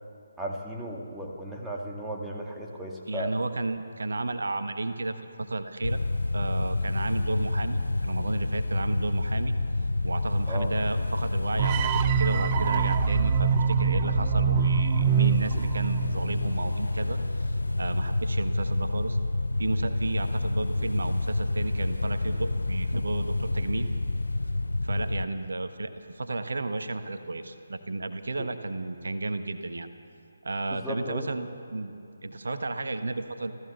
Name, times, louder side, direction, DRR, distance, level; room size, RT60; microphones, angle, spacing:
voice 1, 0.4-3.3 10.5-10.7 28.4-28.5 30.7-31.3, equal, 5° right, -2 dB, 2.1 m, -35 dB
voice 2, 3.1-6.0 6.3-9.5 10.0-19.2 19.6-23.9 24.8-29.9 30.4-31.9 32.2-33.5, right 2 dB, 60° right, 8 dB, 1.2 m, -33 dB
sound 1, 5.8-25.3, left 2 dB, 75° left, 0.5 m, -28 dB
sound 2, 11.6-16.7, right 9 dB, 25° right, 0.5 m, -25 dB
30.0 x 14.5 x 6.9 m, 2.5 s
figure-of-eight pair, 145°, 0 cm